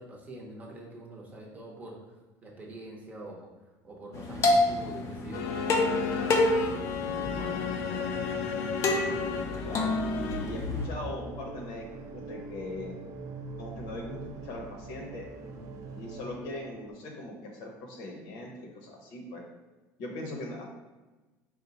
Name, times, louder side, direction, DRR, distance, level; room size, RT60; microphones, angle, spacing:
voice 1, 0.0-3.5 3.8-6.4 7.0-8.1 15.5-15.7, right 1 dB, 20° right, -2 dB, 0.8 m, -45 dB
sound 1, 4.1-10.9, left 2 dB, 35° left, 0.5 m, -29 dB
sound 2, 5.3-10.7, left 6 dB, 90° left, 0.4 m, -33 dB
voice 2, 9.6-13.0 13.6-14.2 14.4-15.3 15.9-19.4 20.0-20.7, left 1 dB, 70° left, 1 dB, 0.9 m, -40 dB
sound 3, 10.7-16.9, right 3 dB, 45° right, 0.5 m, -43 dB
4.3 x 2.2 x 3.9 m, 1.2 s
cardioid pair, 140°, 8 cm